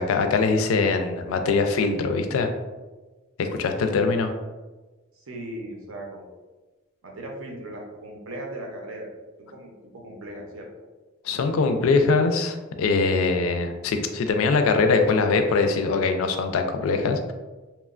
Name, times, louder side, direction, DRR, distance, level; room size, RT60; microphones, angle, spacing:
voice 1, 0.0-2.5 3.4-4.3 11.2-17.3, left 4 dB, 85° left, 6 dB, 0.3 m, -22 dB
voice 2, 5.1-6.3 7.0-9.1 9.4-10.7, right 1 dB, 80° right, 0 dB, 0.6 m, -38 dB
2.9 x 2.1 x 2.4 m, 1.2 s
head